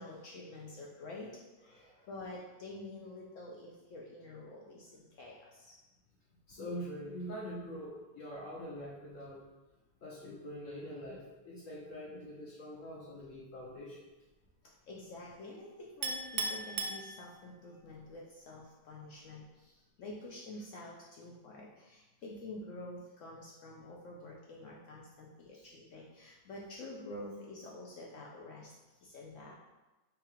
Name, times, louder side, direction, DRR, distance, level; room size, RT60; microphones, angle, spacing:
voice 1, 0.0-1.3 1.6-1.8 2.1-5.8 14.6-28.7 29.0-29.5, left 2 dB, 80° left, -2 dB, 0.7 m, -48 dB
voice 2, 1.7-2.1 6.5-9.4 10.0-14.0, equal, 55° left, -5 dB, 1.0 m, -44 dB
Chink clink, 16.0-17.7, right 3 dB, 70° right, 1.1 m, -37 dB
3.7 x 3.0 x 4.8 m, 1.1 s
omnidirectional pair, 2.0 m